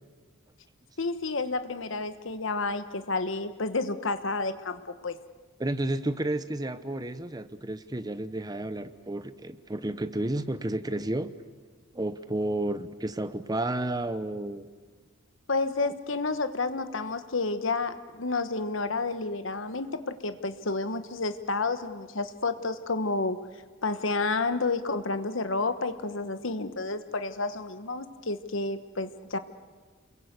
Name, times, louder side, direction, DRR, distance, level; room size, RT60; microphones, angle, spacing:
voice 1, 1.0-5.2 15.5-23.4 23.8-29.4, left 3 dB, 70° left, 10 dB, 1.2 m, -30 dB
voice 2, 5.6-11.3 11.9-14.7, right 1 dB, 20° right, 12 dB, 0.9 m, -31 dB
28.0 x 22.0 x 8.2 m, 1.5 s
head